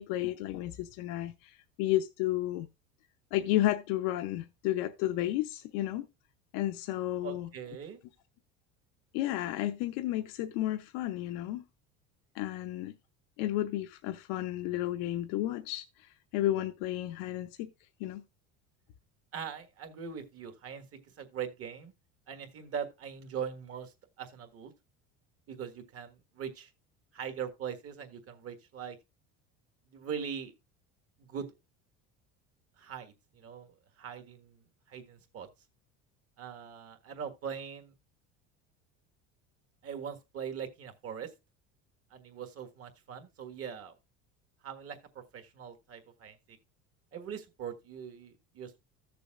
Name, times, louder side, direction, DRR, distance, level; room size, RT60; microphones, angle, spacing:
voice 1, 0.0-2.7 3.3-6.1 6.5-7.5 9.1-11.6 12.3-12.9 13.4-15.8 16.3-17.7 18.0-18.2, left 14 dB, 75° left, 0.8 m, -32 dB
voice 2, 7.2-8.0 19.3-21.9 22.3-23.9 24.2-24.7 25.5-26.7 27.1-29.0 29.9-30.5 31.3-31.5 32.8-34.6 34.9-35.5 36.4-37.9 39.8-41.3 42.1-43.9 44.6-45.0 45.3-46.6 47.1-48.8, right 7 dB, 45° right, 1.6 m, -41 dB
14.5 x 6.9 x 2.4 m
cardioid pair, 125°, 34 cm